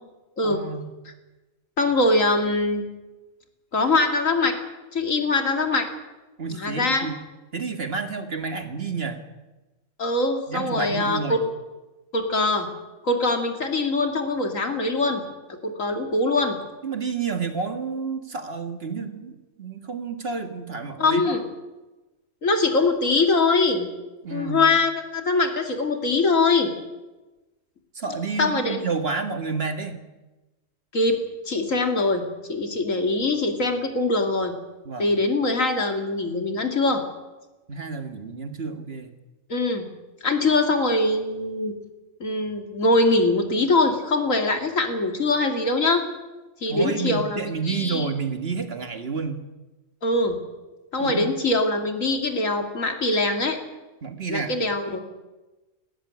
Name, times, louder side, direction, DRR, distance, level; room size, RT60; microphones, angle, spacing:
voice 1, 0.4-0.9 6.4-7.2 7.5-9.2 10.5-11.4 16.8-21.4 24.2-24.6 28.0-30.0 34.8-35.1 37.7-39.1 46.7-49.4 51.0-51.3 54.0-54.5, right 5 dB, 50° right, 7 dB, 2.0 m, -30 dB
voice 2, 1.8-2.9 3.7-4.6 4.9-5.9 6.5-7.1 10.0-11.4 12.1-12.7 13.0-15.2 15.6-16.6 21.0-21.4 22.4-23.9 24.3-26.7 28.4-28.8 30.9-31.2 31.5-32.2 32.5-34.5 35.0-37.0 39.5-39.9 40.2-41.8 42.2-46.0 46.6-48.1 50.0-50.4 50.9-53.6 54.3-55.0, left 2 dB, 90° left, 5 dB, 3.0 m, -22 dB
18.5 x 15.0 x 9.7 m, 1.1 s
omnidirectional pair, 1.3 m